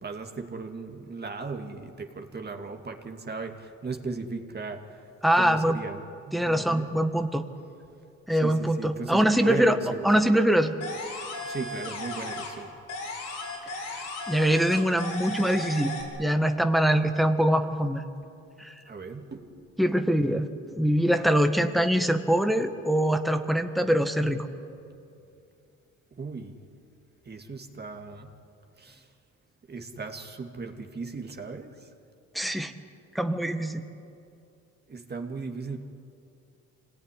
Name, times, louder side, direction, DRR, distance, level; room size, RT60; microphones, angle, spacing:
voice 1, 0.0-5.0 5.3-6.0 6.3-6.9 8.3-10.1 11.4-12.7 18.8-19.7 26.1-26.6 27.2-28.3 28.8-29.1 29.7-31.9 34.9-35.8, right 4 dB, 35° right, 4 dB, 2.2 m, -37 dB
voice 2, 5.2-5.8 6.3-7.4 8.3-9.8 10.0-10.8 13.8-18.0 18.6-18.8 19.8-24.5 32.3-32.7 33.1-33.8, equal, ahead, 6 dB, 1.5 m, -24 dB
sound 1, 10.8-12.6 12.9-16.0, left 2 dB, 80° left, 6.3 m, -36 dB
25.0 x 18.0 x 10.0 m, 2.7 s
cardioid pair, 90°, 30 cm